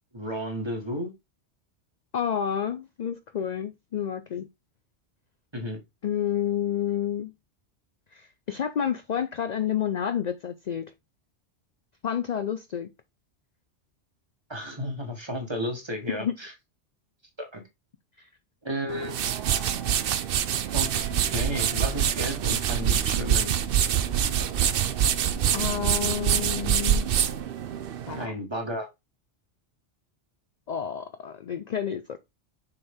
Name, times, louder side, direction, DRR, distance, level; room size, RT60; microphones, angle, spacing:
voice 1, 0.1-1.1 5.5-5.8 14.5-16.5 17.4-17.6 18.6-19.2 20.7-23.5 28.2-28.9, equal, 25° right, 1.4 m, -33 dB
voice 2, 2.1-4.5 6.0-7.3 8.1-10.9 12.0-12.9 16.1-16.3 18.2-18.3 25.5-27.1 28.1-28.3 30.7-32.2, left 9 dB, 55° left, 0.5 m, -29 dB
sound 1, 18.9-28.3, right 9 dB, 60° right, 0.7 m, -25 dB
6.6 x 4.5 x 3.5 m
omnidirectional pair, 1.2 m